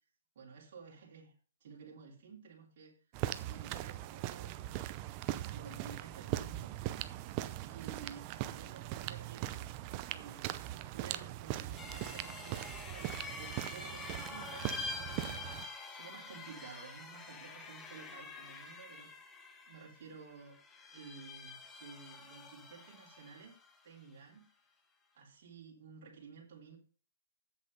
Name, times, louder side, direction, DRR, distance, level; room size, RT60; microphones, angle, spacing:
voice 1, 0.3-1.3 1.6-2.9 3.5-4.6 5.5-7.1 7.6-9.7 10.0-19.2 19.7-20.6 20.9-23.6 23.8-24.4 25.1-26.8, right 5 dB, 55° right, -2 dB, 3.1 m, -53 dB
sound 1, 3.1-15.7, right 14 dB, 35° right, 0.6 m, -40 dB
sound 2, 11.8-23.8, left 3 dB, 15° left, 1.3 m, -47 dB
7.9 x 7.2 x 5.4 m, 0.39 s
hypercardioid pair, 135°, 0 cm